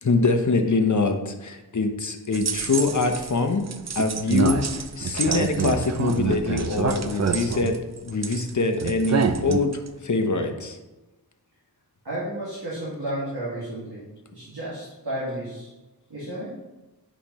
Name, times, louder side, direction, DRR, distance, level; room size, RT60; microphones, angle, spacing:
voice 1, 0.0-3.6 4.0-10.8, left 3 dB, 50° left, 5 dB, 0.8 m, -24 dB
sound 1, 2.3-3.3 3.7-8.5 8.8-9.9, right 5 dB, 45° right, 0.4 m, -26 dB
voice 2, 12.0-14.0 14.3-15.7 16.1-16.5, right 1 dB, 80° right, -9 dB, 2.0 m, -32 dB
8.5 x 4.9 x 3.0 m, 1.1 s
wide cardioid pair, 65°, 39 cm